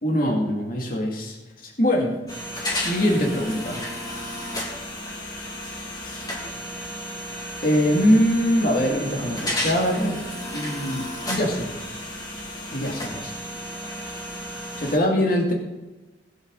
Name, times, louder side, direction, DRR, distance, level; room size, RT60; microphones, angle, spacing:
voice 1, 0.0-2.2 2.7-3.8 6.0-6.5 7.6-11.7 12.7-13.4 14.8-15.5, equal, 45° left, -1 dB, 2.4 m, -23 dB
sound 1, 2.3-15.0, equal, 20° left, 2.5 m, -33 dB
20.0 x 8.2 x 4.1 m, 1.1 s
head